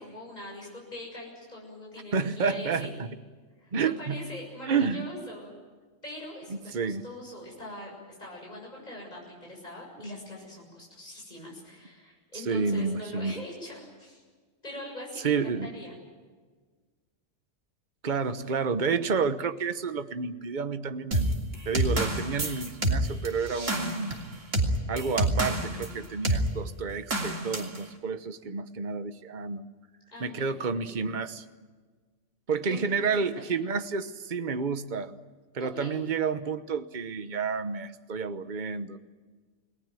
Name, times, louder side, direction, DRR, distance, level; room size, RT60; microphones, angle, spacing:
voice 1, 0.0-2.9 3.6-5.5 6.0-14.2 14.6-15.9 30.1-30.5 32.7-33.1 33.4-33.6 35.6-36.0, left 1 dB, 35° left, -2 dB, 7.3 m, -42 dB
voice 2, 2.1-3.1 3.7-4.3 4.7-5.1 6.5-7.0 12.3-13.3 15.2-15.7 18.0-21.3 21.6-24.2 24.9-29.7 30.2-31.4 32.5-35.1 35.5-39.0, right 5 dB, 40° right, 11 dB, 1.2 m, -30 dB
sound 1, 21.1-25.9 26.2-26.5 27.1-27.8, right 1 dB, 85° right, 3.5 m, -27 dB
29.5 x 19.0 x 9.1 m, 1.4 s
omnidirectional pair, 1.3 m